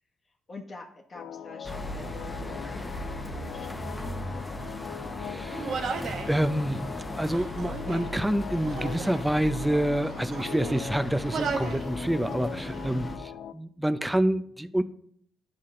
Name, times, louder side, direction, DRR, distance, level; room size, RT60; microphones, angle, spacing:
voice 1, 0.5-2.2 2.7-4.5, left 3 dB, 45° left, 0 dB, 1.1 m, -46 dB
sound 1, 1.1-13.5, left 9 dB, 75° left, 0.3 m, -41 dB
sound 2, 1.6-13.2, left 1 dB, 15° left, 1.0 m, -37 dB
voice 2, 5.2-6.9 7.2-14.8, right 1 dB, 5° right, 11 dB, 0.5 m, -28 dB
Human voice, 5.5-6.3 7.2-8.2 8.6-9.3 9.9-10.9 11.3-11.9 12.2-12.9, right 5 dB, 70° right, 1.1 m, -35 dB
11.0 x 4.1 x 3.8 m, 0.65 s
supercardioid pair, 65°, 0 cm